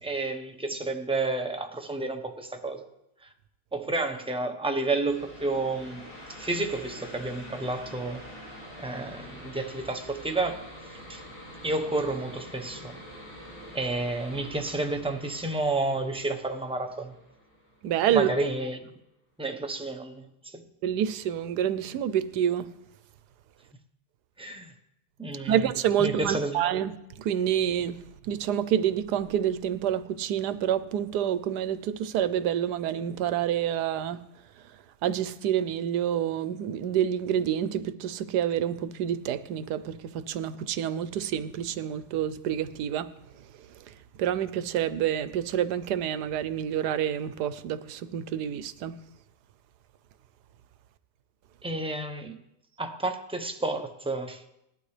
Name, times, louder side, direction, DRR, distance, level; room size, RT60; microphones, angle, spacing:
voice 1, 0.0-2.9 3.7-8.2 8.8-10.6 11.1-11.2 11.6-13.0 13.7-17.1 18.1-18.9 19.4-20.6 24.4-24.7 25.2-25.5 26.0-26.6 51.6-52.4 52.8-54.4, right 2 dB, 5° right, 0.6 m, -30 dB
sound 1, 5.0-18.3, equal, 35° left, 3.1 m, -46 dB
voice 2, 17.8-18.3 20.8-22.7 25.4-34.2 34.5-43.1 43.3-49.0, right 10 dB, 85° right, 1.2 m, -28 dB
19.5 x 11.5 x 3.3 m
omnidirectional pair, 1.7 m